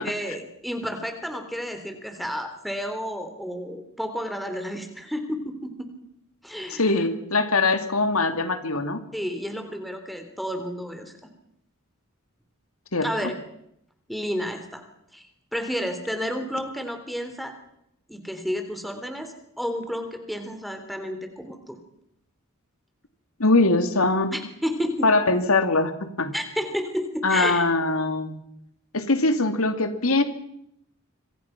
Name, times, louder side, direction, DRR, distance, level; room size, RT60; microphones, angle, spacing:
voice 1, 0.0-5.9 6.4-6.9 9.1-11.1 13.0-13.3 14.1-14.8 15.1-15.3 15.5-17.5 18.1-21.8 24.3-25.1 26.3-27.6, equal, ahead, 6 dB, 3.4 m, -31 dB
voice 2, 6.8-9.0 12.9-13.1 23.4-24.3 25.0-26.3 27.2-28.4 28.9-30.2, left 3 dB, 75° left, 8 dB, 2.4 m, -22 dB
26.5 x 24.5 x 5.9 m, 0.76 s
head